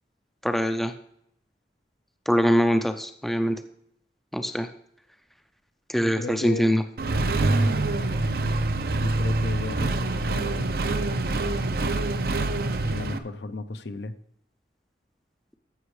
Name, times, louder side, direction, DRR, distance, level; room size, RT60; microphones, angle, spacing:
voice 1, 0.4-0.9 2.3-3.6 4.3-4.7 5.9-6.8, equal, ahead, 7 dB, 0.4 m, -23 dB
voice 2, 6.0-6.9 8.0-8.1 8.9-10.8 12.8-14.1, left 2 dB, 75° left, 11 dB, 0.6 m, -35 dB
Accelerating revving vroom, 7.0-13.2, right 2 dB, 55° right, 0.6 m, -25 dB
14.0 x 6.1 x 3.2 m, 0.72 s
head